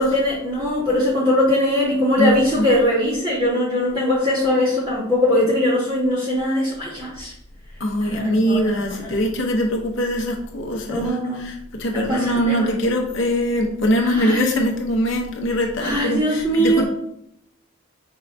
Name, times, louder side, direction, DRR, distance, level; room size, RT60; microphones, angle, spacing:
voice 1, 0.0-7.3 8.0-8.6 10.9-11.5 11.9-12.7 14.0-14.6 15.8-16.8, left 1 dB, 25° right, -13 dB, 1.7 m, -21 dB
voice 2, 2.2-2.6 7.8-16.8, equal, 65° left, 1 dB, 0.8 m, -22 dB
5.4 x 3.3 x 2.6 m, 0.77 s
head